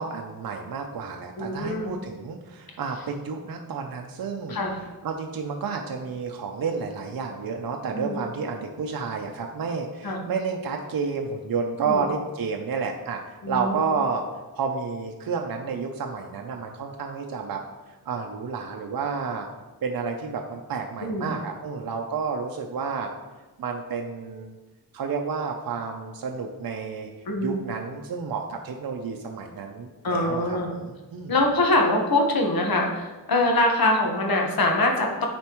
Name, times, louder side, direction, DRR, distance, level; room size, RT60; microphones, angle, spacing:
voice 1, 0.0-13.2 13.5-14.2 14.6-17.6 18.1-19.5 19.8-23.1 23.6-24.5 24.9-27.1 27.4-31.5, right 5 dB, 65° right, 2 dB, 0.6 m, -30 dB
voice 2, 1.4-1.9 4.5-4.8 7.9-8.3 10.0-10.3 11.8-12.0 13.4-13.9 21.0-21.4 27.3-27.6 30.0-30.7 31.3-35.3, left 2 dB, 70° left, 1 dB, 1.2 m, -24 dB
9.1 x 4.3 x 3.0 m, 1.2 s
wide cardioid pair, 85°, 37 cm